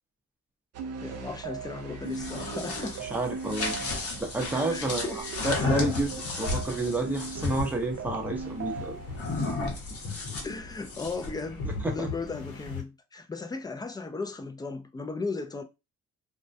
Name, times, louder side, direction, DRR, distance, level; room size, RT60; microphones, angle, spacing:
sound 1, 0.7-9.5, right 6 dB, 55° right, 0.5 m, -38 dB
voice 1, 1.0-3.1 4.6-5.3 10.4-15.6, left 4 dB, 15° left, 0.3 m, -36 dB
sound 2, 1.9-7.7 9.1-11.4, left 3 dB, 50° left, 0.9 m, -33 dB
voice 2, 3.1-3.7 4.2-5.1 5.4-6.1 6.4-9.0 11.8-12.1, right 2 dB, 5° right, 0.7 m, -29 dB
sound 3, 6.2-12.8, left 3 dB, 80° left, 0.8 m, -40 dB
2.2 x 2.1 x 2.6 m
cardioid pair, 90°, 30 cm